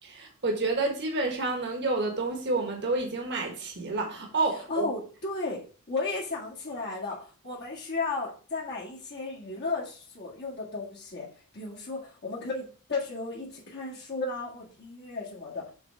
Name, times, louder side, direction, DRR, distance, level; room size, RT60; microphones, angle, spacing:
voice 1, 0.0-4.9, right 3 dB, 50° right, 1.4 m, -29 dB
voice 2, 4.7-15.7, left 3 dB, 50° left, 1.8 m, -34 dB
7.2 x 3.8 x 5.5 m
head